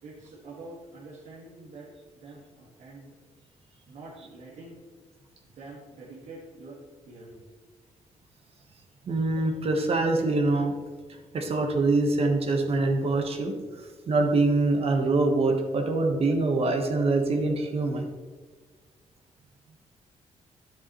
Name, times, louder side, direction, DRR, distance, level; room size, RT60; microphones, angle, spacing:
voice 1, 0.0-3.1 3.9-4.8 5.4-7.5, right 2 dB, 80° right, -5 dB, 1.7 m, -46 dB
voice 2, 9.0-10.8 11.3-18.0, right 3 dB, 55° right, 3 dB, 1.2 m, -24 dB
10.0 x 7.2 x 3.1 m, 1.4 s
cardioid pair, 105°, 12 cm